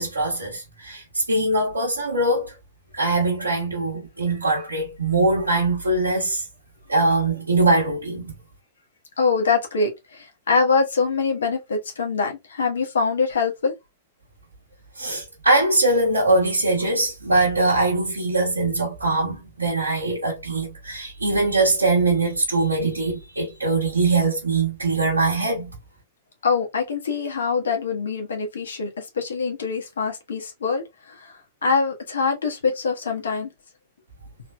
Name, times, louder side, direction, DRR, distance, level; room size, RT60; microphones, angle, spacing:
voice 1, 0.0-2.5 2.9-6.4 6.9-8.3 15.0-25.7, right 2 dB, 90° right, 1.2 m, -22 dB
voice 2, 9.2-13.7 26.4-31.3 31.6-33.5, left 4 dB, 75° left, 1.3 m, -24 dB
3.8 x 3.1 x 2.2 m
hypercardioid pair, 105°, 0 cm